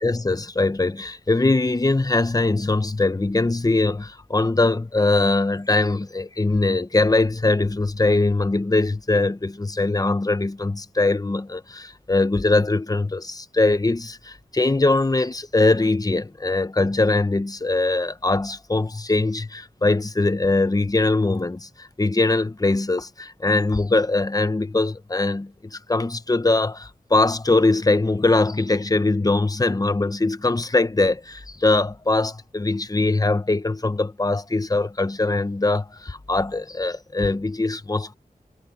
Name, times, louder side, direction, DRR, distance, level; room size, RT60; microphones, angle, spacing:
voice 1, 0.0-38.1, left 2 dB, 25° left, 0.9 m, -22 dB
wide cardioid pair, 75°, 15 cm